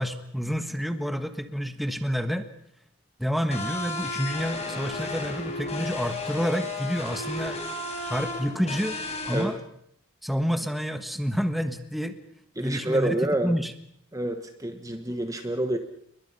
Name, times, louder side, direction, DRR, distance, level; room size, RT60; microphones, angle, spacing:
voice 1, 0.0-2.5 3.2-7.6 8.1-9.0 9.3-9.6 10.2-12.2 12.6-13.7, equal, ahead, 8 dB, 1.5 m, -29 dB
sound 1, 3.5-9.4, left 2 dB, 30° left, 4.7 m, -33 dB
voice 2, 12.6-13.5 14.1-15.8, right 1 dB, 15° right, 7 dB, 1.3 m, -28 dB
29.5 x 22.5 x 5.6 m, 0.71 s
head